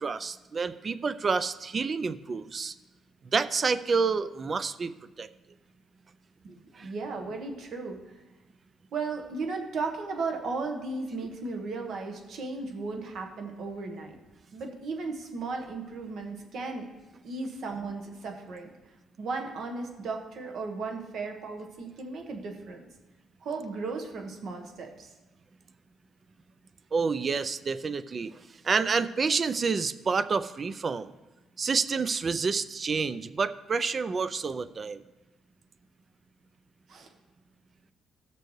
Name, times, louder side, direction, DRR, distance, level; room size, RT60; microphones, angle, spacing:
voice 1, 0.0-2.7 3.3-4.9 5.2-5.3 6.8-6.9 26.9-31.1 31.6-35.0, right 5 dB, 40° right, 13 dB, 0.4 m, -28 dB
voice 2, 6.4-8.0 8.9-14.2 14.5-16.8 17.2-18.7 19.2-22.8 23.4-25.1 36.9-37.1, right 3 dB, 65° right, 3 dB, 1.3 m, -35 dB
16.5 x 6.7 x 3.2 m, 1.1 s
cardioid pair, 90°, 0 cm